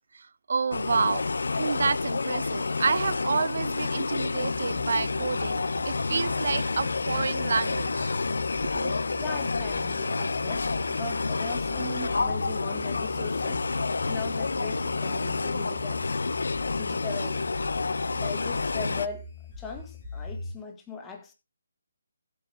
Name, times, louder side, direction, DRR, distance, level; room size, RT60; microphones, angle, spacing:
voice 1, 0.1-1.2 1.5-8.2 8.7-8.9, right 5 dB, 60° right, 0.6 m, -29 dB
sound 1, 0.7-19.1, left 3 dB, 65° left, 0.5 m, -29 dB
sound 2, 4.5-20.5, left 2 dB, 35° left, 7.1 m, -42 dB
voice 2, 9.2-16.0 16.8-17.4 18.1-19.3 19.6-21.3, left 4 dB, 10° left, 1.9 m, -39 dB
15.0 x 8.1 x 3.5 m
figure-of-eight pair, 150°, 0 cm